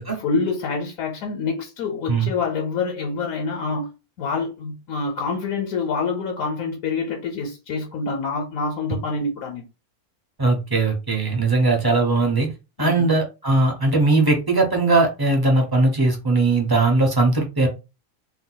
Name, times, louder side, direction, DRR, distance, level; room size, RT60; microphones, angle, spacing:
voice 1, 0.2-3.9 4.2-9.6 12.8-13.1, left 4 dB, 75° left, 1.0 m, -26 dB
voice 2, 10.4-12.5 12.8-17.7, right 3 dB, 30° right, 0.4 m, -19 dB
2.6 x 2.2 x 3.8 m
omnidirectional pair, 1.5 m